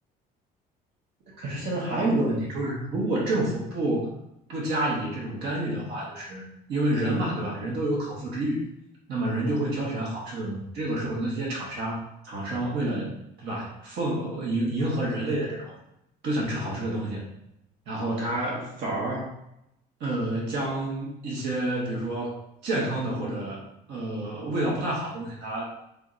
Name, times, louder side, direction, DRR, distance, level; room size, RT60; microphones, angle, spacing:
voice 1, 1.4-4.1 4.5-6.4 6.7-8.6 9.1-15.8 16.2-17.2 17.9-19.3 20.0-23.6 23.9-25.7, right 1 dB, 85° right, -4 dB, 1.3 m, -29 dB
3.6 x 3.4 x 2.6 m, 0.80 s
cardioid pair, 110°, 17 cm